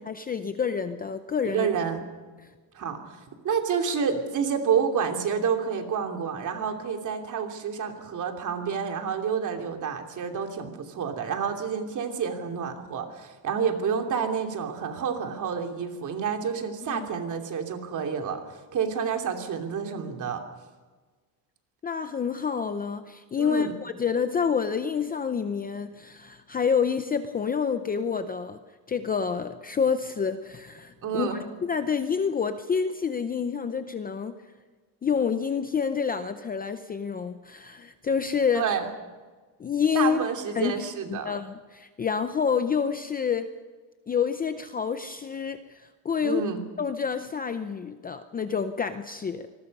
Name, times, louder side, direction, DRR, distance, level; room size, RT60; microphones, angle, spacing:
voice 1, 0.1-1.7 16.9-17.1 21.8-28.6 28.9-34.3 35.0-38.6 39.6-40.2 40.6-43.5 44.1-46.5 46.8-49.5, left 6 dB, 20° left, 9 dB, 0.6 m, -28 dB
voice 2, 1.5-2.1 2.7-20.4 23.4-23.7 31.0-31.4 38.5-38.9 39.9-41.3 46.2-46.6, right 6 dB, 40° right, 4 dB, 2.9 m, -29 dB
26.0 x 21.0 x 5.4 m, 1.4 s
cardioid pair, 170°, 46 cm